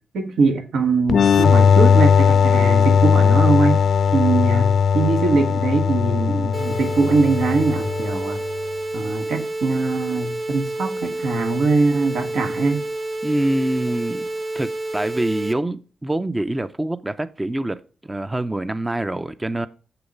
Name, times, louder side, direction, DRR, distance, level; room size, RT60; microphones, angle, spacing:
voice 1, 0.1-3.8 4.1-8.4 8.9-12.8, right 3 dB, 80° right, 1.5 m, -21 dB
sound 1, 1.1-8.5, left 6 dB, 65° left, 0.5 m, -17 dB
sound 2, 6.5-15.5, right 2 dB, 30° right, 1.3 m, -29 dB
voice 2, 13.2-14.3 14.5-19.7, right 1 dB, 15° right, 0.5 m, -25 dB
7.0 x 6.9 x 5.3 m
cardioid pair, 75°, 0 cm